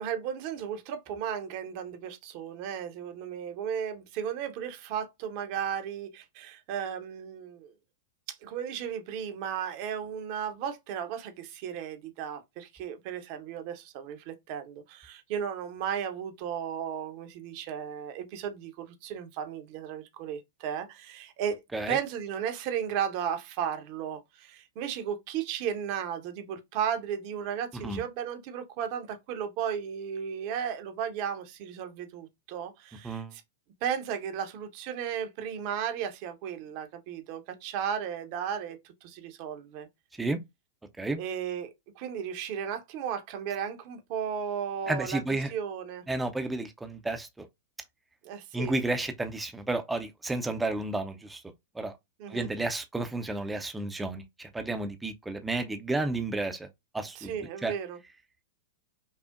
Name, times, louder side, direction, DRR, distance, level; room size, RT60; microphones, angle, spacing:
voice 1, 0.0-7.7 8.4-21.6 21.9-33.4 33.8-39.9 41.2-41.7 42.0-45.2 45.5-46.0 48.2-48.7 52.2-52.5 57.2-58.0, right 8 dB, 45° right, 0.8 m, -35 dB
voice 2, 33.0-33.3 40.2-40.4 41.0-41.2 44.9-45.5 46.1-47.5 48.5-51.4 51.7-52.0 52.3-56.7 56.9-57.7, right 2 dB, 10° right, 0.5 m, -32 dB
5.5 x 2.1 x 2.4 m
figure-of-eight pair, 100°, 0 cm